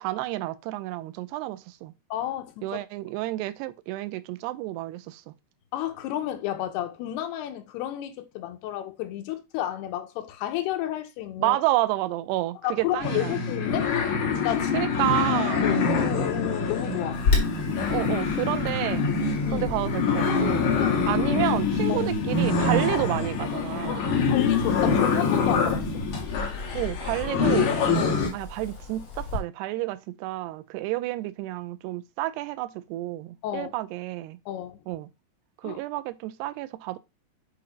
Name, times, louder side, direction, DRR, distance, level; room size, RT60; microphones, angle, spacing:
voice 1, 0.0-1.9 2.6-5.3 11.4-13.4 14.7-15.6 17.9-19.1 19.5-20.6 21.1-24.1 26.7-27.7 28.3-34.4 34.9-35.1 35.6-37.0, right 17 dB, 90° right, 2.6 m, -30 dB
voice 2, 2.1-2.8 5.7-11.6 12.6-14.0 14.4-14.9 15.6-17.2 19.5-19.7 20.8-21.0 21.9-22.1 23.9-25.9 28.0-28.2 33.4-33.7 34.5-34.8 35.6-35.8, left 12 dB, 85° left, 2.8 m, -31 dB
sound 1, 13.0-28.3, left 5 dB, 55° left, 3.1 m, -25 dB
Wind, 17.1-29.4, left 3 dB, 40° left, 2.4 m, -34 dB
8.5 x 2.9 x 5.0 m
omnidirectional pair, 4.7 m